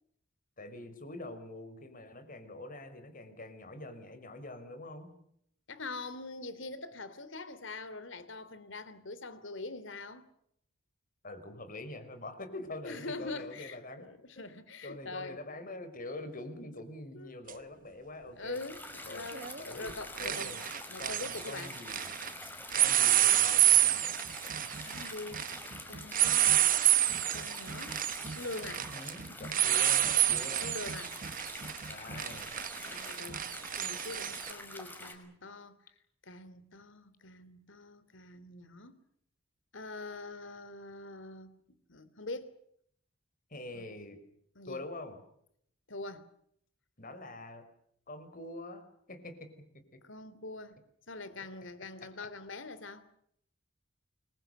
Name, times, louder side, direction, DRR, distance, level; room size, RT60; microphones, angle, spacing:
voice 1, 0.6-5.2 11.2-14.1 14.3-14.5 14.8-18.6 19.0-19.3 19.6-19.9 20.2-20.6 21.0-22.1 22.7-24.1 28.7-30.8 31.9-32.6 43.5-44.2 44.7-45.2 47.0-47.7 48.1-49.5, left 2 dB, 45° left, 5.2 m, -45 dB
voice 2, 5.7-10.2 12.8-15.4 17.1-17.3 18.3-21.8 24.8-25.4 25.9-26.6 27.3-28.0 28.3-28.8 29.3-29.5 30.4-31.2 32.9-35.8 36.2-39.0 39.7-41.5 41.9-42.5 43.7-43.9 44.5-44.8 45.9-46.3 50.0-50.8 51.1-53.0, left 3 dB, 70° left, 3.1 m, -44 dB
sound 1, 17.5-17.6 19.3-19.6 19.9-22.3 22.7-34.5, right 12 dB, 45° right, 1.0 m, -29 dB
sound 2, 18.5-35.1, left 1 dB, 10° left, 5.8 m, -46 dB
29.5 x 23.0 x 6.8 m
head